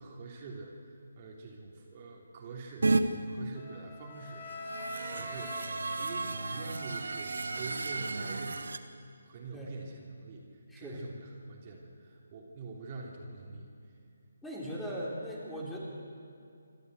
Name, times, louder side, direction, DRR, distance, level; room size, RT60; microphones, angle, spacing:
voice 1, 0.0-5.6 6.0-10.4 10.7-13.7 14.0-14.2, right 3 dB, 35° right, -2 dB, 3.1 m, -45 dB
sound 1, 2.8-3.0 4.4-8.8, right 3 dB, 70° right, 1.3 m, -33 dB
Wind instrument woodwind instrument, 3.6-7.6, left 2 dB, 30° left, 2.4 m, -44 dB
voice 2, 10.7-11.0 14.4-15.8, equal, 5° left, -5 dB, 3.7 m, -39 dB
26.5 x 12.0 x 8.1 m, 2.5 s
figure-of-eight pair, 150°, 0 cm